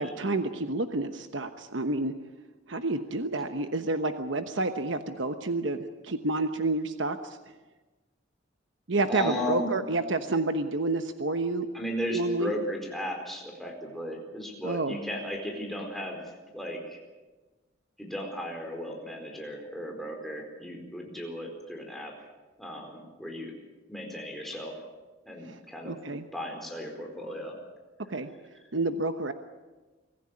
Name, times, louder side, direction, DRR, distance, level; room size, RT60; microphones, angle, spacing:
voice 1, 0.0-2.1 2.7-7.4 8.9-11.7 12.1-12.5 14.6-15.0 25.4-25.6 25.8-26.3 28.1-28.3 28.7-29.3, right 2 dB, 70° right, 8 dB, 1.1 m, -29 dB
voice 2, 9.1-9.7 11.7-16.2 16.5-17.0 18.0-22.1 22.6-23.5 23.9-24.8 25.3-25.9 26.3-27.6, equal, ahead, 0 dB, 4.4 m, -35 dB
24.5 x 14.5 x 8.9 m, 1.2 s
head